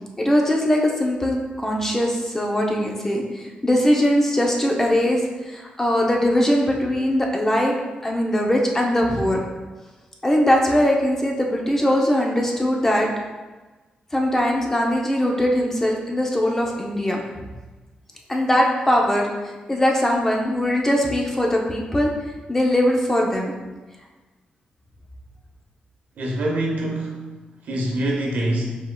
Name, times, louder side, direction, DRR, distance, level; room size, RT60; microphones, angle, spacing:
voice 1, 0.2-7.7 8.0-9.4 10.2-13.1 14.1-17.2 18.3-22.1 22.5-23.5, equal, 15° left, -1 dB, 0.6 m, -21 dB
voice 2, 26.2-27.2 27.6-28.6, right 1 dB, 75° right, -1 dB, 0.9 m, -24 dB
5.2 x 3.6 x 2.2 m, 1.2 s
wide cardioid pair, 120°, 3 cm